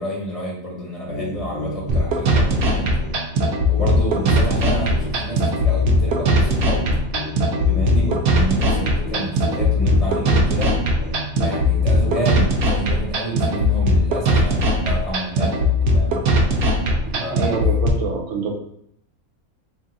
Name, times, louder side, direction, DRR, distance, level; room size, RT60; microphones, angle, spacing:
voice 1, 0.0-2.9 3.6-6.8 7.6-10.8 11.4-16.2 17.2-17.6, right 1 dB, 30° left, -4 dB, 0.9 m, -29 dB
sound 1, 1.0-12.6, equal, 75° left, 1.2 m, -32 dB
sound 2, 1.9-17.9, equal, 90° right, 1.1 m, -19 dB
voice 2, 17.0-18.5, right 5 dB, 65° right, 1 dB, 1.0 m, -26 dB
3.6 x 2.5 x 3.9 m, 0.71 s
omnidirectional pair, 1.5 m